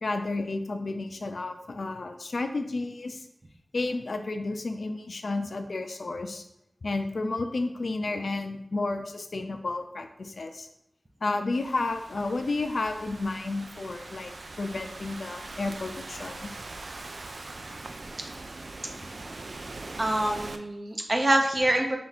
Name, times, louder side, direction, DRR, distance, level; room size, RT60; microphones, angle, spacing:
voice 1, 0.0-3.3 3.7-6.4 6.8-10.7 11.2-14.3 14.6-16.5, left 3 dB, 75° left, 7 dB, 0.4 m, -31 dB
Thunderstorm / Rain, 11.5-20.6, right 2 dB, 65° right, 0.3 m, -42 dB
voice 2, 20.0-22.0, right 1 dB, 40° right, 3 dB, 0.7 m, -25 dB
3.5 x 2.9 x 4.0 m, 0.77 s
wide cardioid pair, 60°, 0 cm